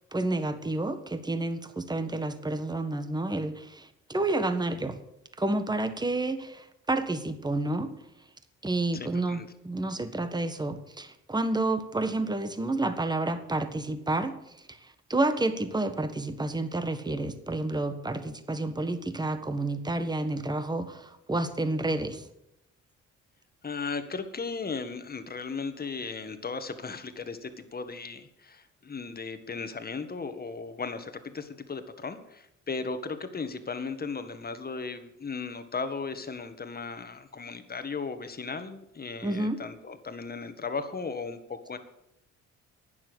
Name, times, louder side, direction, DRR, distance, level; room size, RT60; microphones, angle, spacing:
voice 1, 0.1-5.0 5.4-7.9 8.6-14.4 14.7-22.2 39.2-39.6, right 2 dB, 15° right, 10 dB, 1.5 m, -30 dB
voice 2, 8.9-9.5 23.6-41.8, left 4 dB, 30° left, 9 dB, 1.7 m, -36 dB
12.0 x 9.5 x 8.0 m, 0.81 s
cardioid pair, 90°, 30 cm